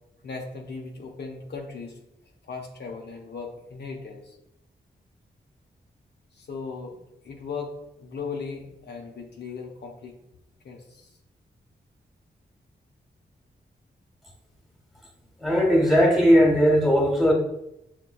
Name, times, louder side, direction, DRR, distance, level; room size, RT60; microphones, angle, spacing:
voice 1, 0.2-2.0 2.4-4.4 6.3-7.0 7.2-7.7 8.0-10.2 10.6-11.1, left 4 dB, 65° left, 0 dB, 0.6 m, -37 dB
voice 2, 15.4-17.3, equal, ahead, 0 dB, 1.2 m, -18 dB
5.6 x 2.2 x 2.3 m, 0.87 s
cardioid pair, 45°, 19 cm